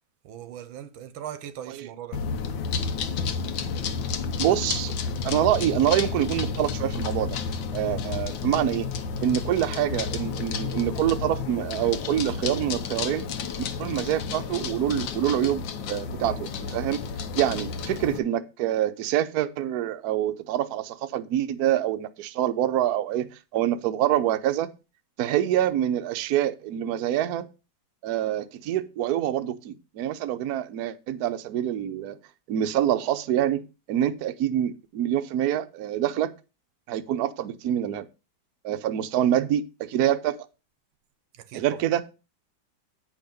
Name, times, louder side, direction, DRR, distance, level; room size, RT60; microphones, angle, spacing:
voice 1, 0.2-2.2 41.3-41.8, right 10 dB, 90° right, 1.6 m, -39 dB
sound 1, 2.1-18.2, left 5 dB, 75° left, 1.6 m, -31 dB
voice 2, 4.4-4.9 5.2-7.4 7.7-8.9 9.2-13.2 13.6-15.6 15.9-17.0 17.4-24.7 25.2-27.5 28.0-32.2 32.5-36.3 36.9-38.0 38.6-40.4 41.5-42.0, right 11 dB, 65° right, 1.1 m, -26 dB
9.4 x 5.2 x 5.2 m
omnidirectional pair, 2.1 m